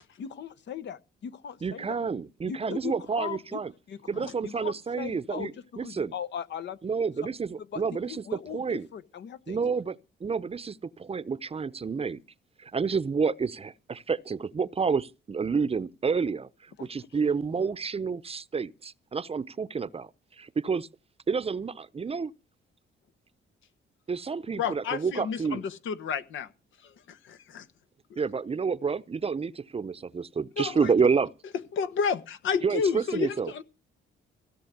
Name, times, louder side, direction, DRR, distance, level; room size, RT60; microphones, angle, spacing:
voice 1, 0.2-1.9 2.5-3.6 3.9-6.8 7.6-9.6 16.8-16.9 17.6-17.7, left 8 dB, 60° left, 1.0 m, -39 dB
voice 2, 1.6-3.7 4.1-6.1 6.8-8.9 9.5-12.2 12.6-16.5 16.8-20.1 20.4-20.9 21.3-22.3 24.1-25.6 28.2-31.3 32.6-33.5, right 5 dB, 30° right, 0.8 m, -29 dB
voice 3, 24.5-26.5 26.8-27.6 30.6-30.9 31.7-33.6, left 6 dB, 80° left, 1.4 m, -30 dB
17.0 x 6.2 x 9.4 m
cardioid pair, 90°, 20 cm